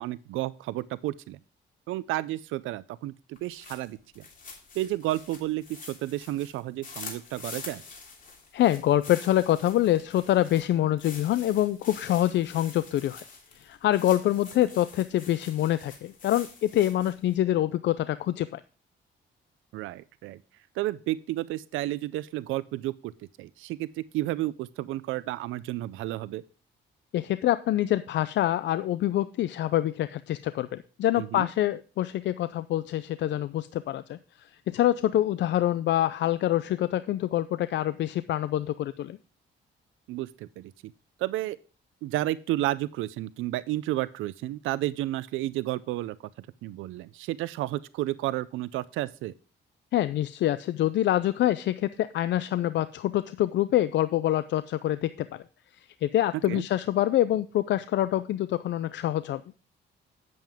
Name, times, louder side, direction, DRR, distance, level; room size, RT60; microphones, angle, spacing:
voice 1, 0.0-1.4 1.9-4.2 4.7-7.8 19.7-20.4 20.7-23.1 23.4-26.4 31.2-31.5 40.1-40.7 41.2-41.6 42.0-49.3 56.5-56.6, right 16 dB, 90° right, 17 dB, 0.4 m, -32 dB
sound 1, 3.4-17.3, left 4 dB, 45° left, 2.9 m, -46 dB
voice 2, 8.5-13.2 13.5-18.6 27.1-39.2 49.9-55.4 56.0-59.4, left 13 dB, 65° left, 14 dB, 0.4 m, -26 dB
9.0 x 7.7 x 3.5 m, 0.36 s
cardioid pair, 90°, 20 cm